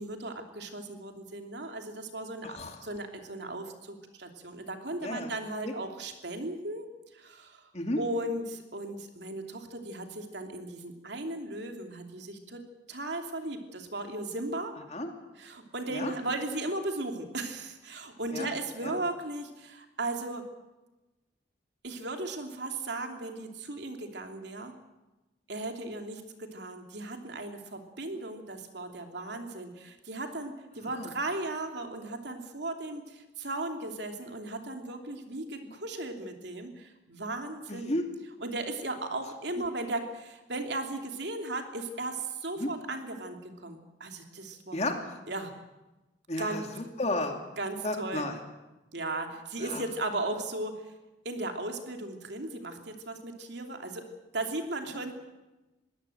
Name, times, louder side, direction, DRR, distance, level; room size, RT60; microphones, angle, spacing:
voice 1, 0.0-7.7 8.0-12.6 12.9-14.7 15.4-20.4 21.8-24.7 25.5-37.9 38.4-44.9 45.3-45.5 46.4-46.6 47.6-48.3 48.9-50.9 51.2-54.0 54.3-55.1, right 2 dB, 65° right, 4 dB, 2.9 m, -36 dB
voice 2, 2.4-2.8 5.0-5.3 5.6-5.7 7.7-8.0 14.9-15.1 15.9-16.1 18.3-18.5 18.8-19.0 30.8-31.1 37.7-38.1 42.5-42.7 44.7-45.2 46.3-47.3 47.8-48.4 49.6-49.8, left 1 dB, 35° left, 4 dB, 2.6 m, -33 dB
22.5 x 17.0 x 7.9 m, 1.1 s
head